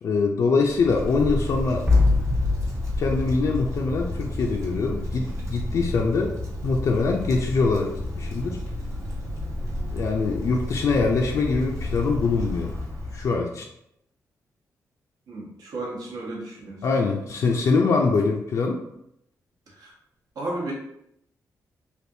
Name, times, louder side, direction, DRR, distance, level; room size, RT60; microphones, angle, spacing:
voice 1, 0.0-1.9 3.0-6.4 6.6-8.6 9.9-12.8 13.1-13.7 16.8-18.8, left 4 dB, 55° left, 1 dB, 0.4 m, -23 dB
Wind, 0.6-13.4, left 1 dB, 50° right, 0.9 m, -31 dB
sound 1, 1.9-4.7, left 3 dB, 10° right, 0.4 m, -24 dB
voice 2, 15.3-16.8 19.7-19.9 20.3-20.7, right 2 dB, 80° right, -2 dB, 1.0 m, -33 dB
3.3 x 2.4 x 2.6 m, 0.78 s
cardioid pair, 125°, 6 cm